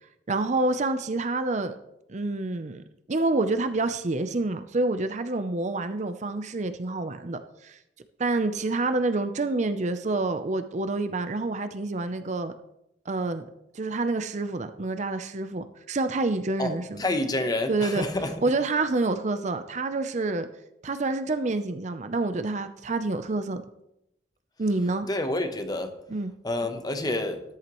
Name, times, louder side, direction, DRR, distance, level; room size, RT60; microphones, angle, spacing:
voice 1, 0.3-1.8 2.1-7.8 8.2-12.5 13.1-13.5 13.7-17.0 17.7-18.1 18.4-20.5 20.8-23.6 24.6-25.1 26.1-26.3, right 2 dB, 40° right, 0.6 m, -28 dB
voice 2, 17.0-18.3 25.1-25.9 26.4-27.4, left 2 dB, 20° left, 0.9 m, -28 dB
13.5 x 10.5 x 3.1 m
head